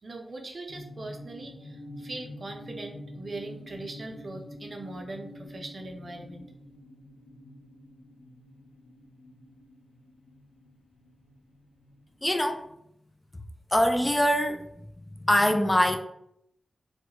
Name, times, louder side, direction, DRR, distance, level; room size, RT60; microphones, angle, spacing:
voice 1, 0.0-6.4, right 2 dB, 55° right, 2 dB, 0.5 m, -40 dB
sound 1, 0.7-12.7, left 1 dB, 90° left, 0.5 m, -47 dB
voice 2, 12.2-12.6 13.7-14.6 15.2-16.0, left 1 dB, 20° left, 5 dB, 0.3 m, -23 dB
2.3 x 2.1 x 2.8 m, 0.74 s
cardioid pair, 50°, 0 cm